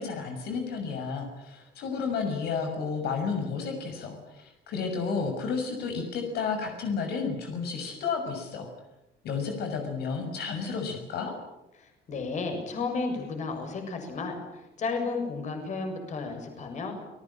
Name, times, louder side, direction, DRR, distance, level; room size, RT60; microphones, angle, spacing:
voice 1, 0.0-8.7 9.2-11.3, left 5 dB, 65° left, 4 dB, 6.5 m, -32 dB
voice 2, 11.8-16.9, left 4 dB, 40° left, 5 dB, 7.1 m, -33 dB
30.0 x 21.0 x 8.8 m, 0.92 s
cardioid pair, 145°, 18 cm